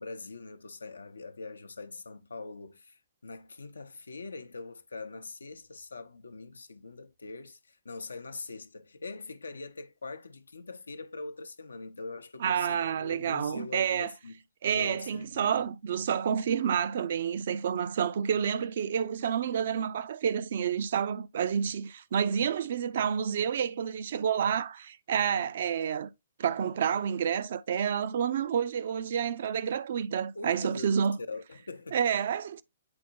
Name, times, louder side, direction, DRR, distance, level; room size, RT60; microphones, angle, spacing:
voice 1, 0.0-14.4 14.7-15.5 30.3-30.9 31.2-32.0, left 3 dB, 70° left, 0.7 m, -42 dB
voice 2, 12.4-14.1 14.6-26.1 26.4-31.2 31.9-32.6, right 8 dB, 50° right, 0.5 m, -29 dB
8.8 x 4.2 x 2.6 m
figure-of-eight pair, 120°, 0 cm